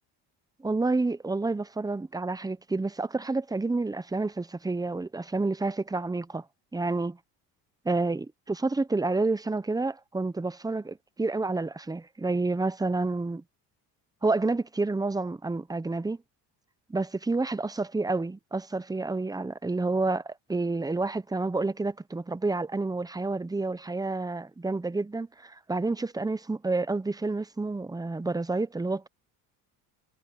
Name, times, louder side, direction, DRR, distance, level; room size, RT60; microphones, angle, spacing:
voice 1, 0.6-6.4 6.7-7.2 7.8-13.4 14.2-16.2 16.9-29.1, right 3 dB, 10° right, 0.8 m, -29 dB
cardioid pair, 100°, 42 cm